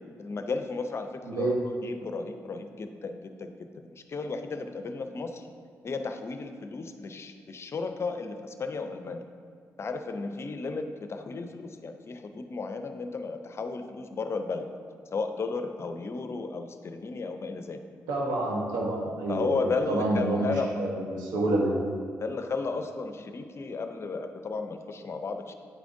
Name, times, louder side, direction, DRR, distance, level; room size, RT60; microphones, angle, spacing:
voice 1, 0.2-1.5 1.8-5.5 5.8-9.2 9.8-14.7 15.1-17.8 19.3-20.7 22.2-25.5, left 4 dB, 45° left, 7 dB, 0.5 m, -34 dB
voice 2, 1.3-1.6 18.1-21.7, right 2 dB, 90° right, -1 dB, 1.0 m, -28 dB
8.7 x 4.9 x 2.6 m, 2.1 s
supercardioid pair, 55°, 6 cm